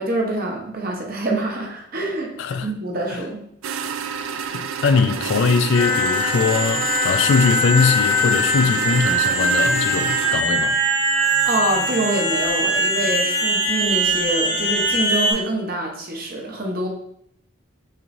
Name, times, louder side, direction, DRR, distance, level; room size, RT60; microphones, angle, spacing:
voice 1, 0.0-2.3 2.6-3.9 11.4-16.9, right 2 dB, 45° right, 0.8 m, -25 dB
voice 2, 2.4-2.7 3.1-3.2 4.2-10.7, left 5 dB, 60° left, 0.3 m, -21 dB
sound 1, 3.6-10.4, right 7 dB, 75° right, 0.3 m, -29 dB
sound 2, 5.7-15.3, equal, 60° right, 1.7 m, -21 dB
6.5 x 3.0 x 2.6 m
head